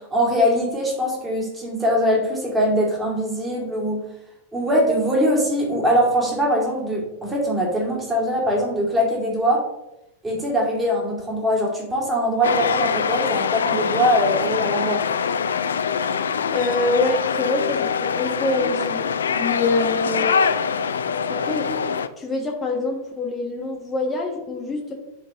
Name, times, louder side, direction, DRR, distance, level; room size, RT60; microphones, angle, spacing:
voice 1, 0.0-4.0 4.5-9.6 10.2-15.0, equal, 15° right, -2 dB, 2.5 m, -22 dB
sound 1, 12.4-22.1, left 6 dB, 70° left, 0.4 m, -24 dB
voice 2, 16.5-19.0 19.4-20.3 21.3-21.7 22.2-24.9, left 2 dB, 20° left, -1 dB, 1.3 m, -25 dB
10.0 x 4.4 x 3.0 m, 0.88 s
figure-of-eight pair, 90°, 0 cm